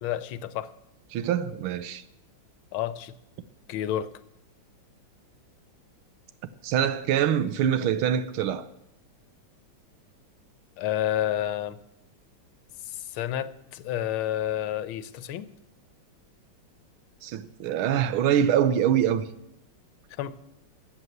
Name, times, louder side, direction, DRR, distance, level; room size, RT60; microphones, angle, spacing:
voice 1, 0.0-0.7 2.7-3.2 3.7-4.2 10.8-11.8 12.8-15.5 20.2-20.4, left 11 dB, 80° left, 1.6 m, -30 dB
voice 2, 1.1-2.0 6.6-8.7 17.2-19.3, right 9 dB, 85° right, 1.7 m, -24 dB
13.0 x 8.0 x 8.0 m
omnidirectional pair, 2.3 m